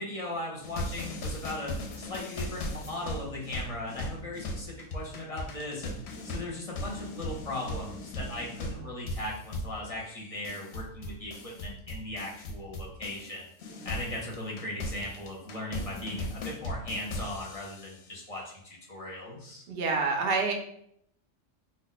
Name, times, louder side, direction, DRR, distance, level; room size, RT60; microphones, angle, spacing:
voice 1, 0.0-5.9 6.2-13.5 13.8-19.6, left 1 dB, 35° left, -4 dB, 0.7 m, -38 dB
sound 1, 0.6-13.3 13.6-18.0, left 1 dB, 65° left, 0.8 m, -38 dB
voice 2, 19.7-20.5, right 4 dB, 60° right, 2 dB, 0.7 m, -27 dB
2.5 x 2.1 x 3.9 m, 0.70 s
omnidirectional pair, 1.3 m